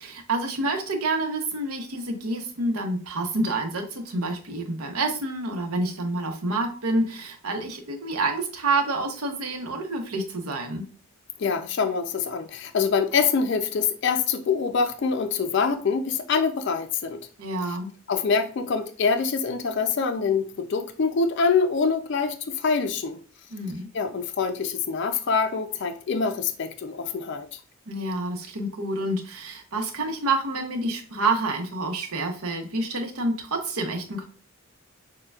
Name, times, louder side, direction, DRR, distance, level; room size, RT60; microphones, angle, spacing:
voice 1, 0.0-10.8 17.4-17.9 23.5-23.9 27.9-34.2, right 2 dB, 80° right, 0.8 m, -28 dB
voice 2, 11.4-17.2 18.1-23.2 23.9-27.6, left 5 dB, 50° left, 0.4 m, -25 dB
6.4 x 2.2 x 2.3 m
head